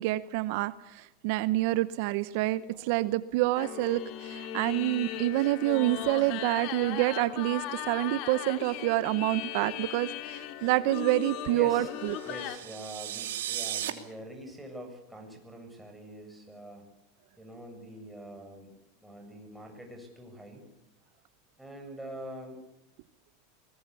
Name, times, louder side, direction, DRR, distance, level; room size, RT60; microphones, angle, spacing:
voice 1, 0.0-12.2, right 17 dB, 65° right, 15 dB, 0.8 m, -28 dB
sound 1, 3.6-12.6, left 11 dB, 55° left, 2.6 m, -38 dB
voice 2, 11.5-11.9 12.2-16.9 17.4-18.7 19.0-20.7 21.6-22.6, right 1 dB, 5° right, 2 dB, 7.6 m, -44 dB
sound 2, 12.0-13.9, right 12 dB, 80° right, 2.8 m, -36 dB
23.0 x 21.0 x 8.4 m, 0.89 s
hypercardioid pair, 110°, 0 cm